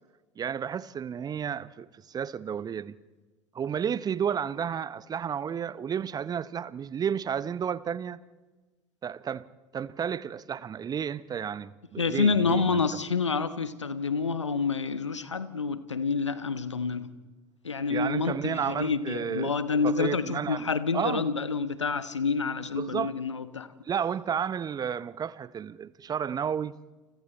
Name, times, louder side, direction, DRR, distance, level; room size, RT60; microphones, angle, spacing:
voice 1, 0.4-2.9 3.5-8.2 9.0-9.5 9.7-12.8 17.9-19.5 19.8-20.7 20.9-21.2 22.7-23.1 23.8-26.7, right 8 dB, 25° right, 0.8 m, -32 dB
voice 2, 12.0-17.1 17.6-23.7, left 5 dB, 80° left, 1.2 m, -28 dB
30.0 x 28.5 x 4.4 m
figure-of-eight pair, 75°, 15 cm